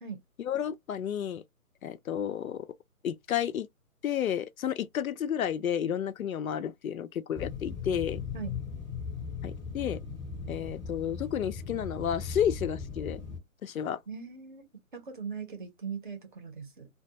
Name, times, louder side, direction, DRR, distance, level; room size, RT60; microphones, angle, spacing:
voice 1, 0.4-1.4 1.8-2.7 3.0-3.7 4.0-8.2 9.4-10.0 10.5-13.2 13.6-14.0, left 9 dB, 75° left, 0.5 m, -31 dB
sound 1, 7.3-13.4, left 5 dB, ahead, 0.6 m, -38 dB
voice 2, 14.1-14.6 14.9-16.9, right 6 dB, 35° right, 0.7 m, -40 dB
2.3 x 2.2 x 2.7 m
hypercardioid pair, 155°, 42 cm